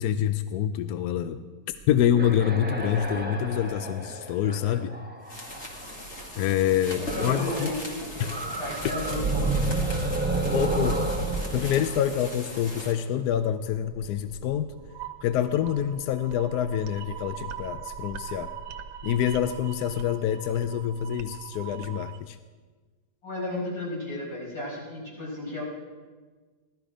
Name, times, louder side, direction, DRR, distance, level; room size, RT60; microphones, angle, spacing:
voice 1, 0.0-1.4 1.9-4.9 6.4-7.7 8.2-8.3 10.5-11.0 11.5-14.7 15.2-18.5 19.0-22.4, left 10 dB, 70° left, 11 dB, 1.0 m, -26 dB
sound 1, 1.8-6.0 7.1-7.8 8.1-13.0, right 3 dB, 10° right, 0.8 m, -31 dB
sound 2, 5.2-12.9, left 1 dB, 40° left, 2.2 m, -39 dB
voice 2, 6.9-8.0 8.6-9.8 23.2-25.6, left 1 dB, 55° left, -5 dB, 6.1 m, -34 dB
sound 3, 13.3-22.2, right 9 dB, 70° right, 1.4 m, -42 dB
16.5 x 13.0 x 5.0 m, 1.4 s
omnidirectional pair, 2.0 m